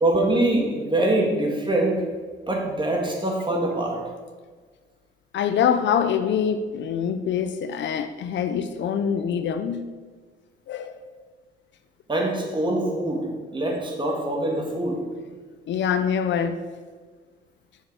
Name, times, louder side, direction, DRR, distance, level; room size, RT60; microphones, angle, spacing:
voice 1, 0.0-2.0 2.5-4.0 12.1-15.0, right 1 dB, 25° right, 1.9 m, -24 dB
voice 2, 5.3-9.9 10.7-11.0 15.7-16.6, left 7 dB, 65° left, 0.6 m, -24 dB
6.5 x 6.3 x 4.7 m
cardioid pair, 90°, 20 cm